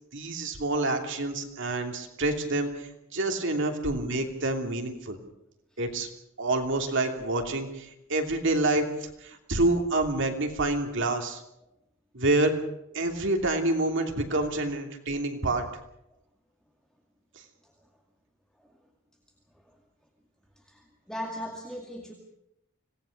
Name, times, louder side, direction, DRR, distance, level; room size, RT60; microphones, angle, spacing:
voice 1, 0.1-5.2 5.8-6.1 6.4-8.9 9.2-11.4 12.1-12.5 12.9-15.6, right 2 dB, 60° right, 3 dB, 2.9 m, -27 dB
voice 2, 20.7-22.1, left 1 dB, 5° left, 0 dB, 2.2 m, -38 dB
25.5 x 18.5 x 6.6 m, 0.82 s
head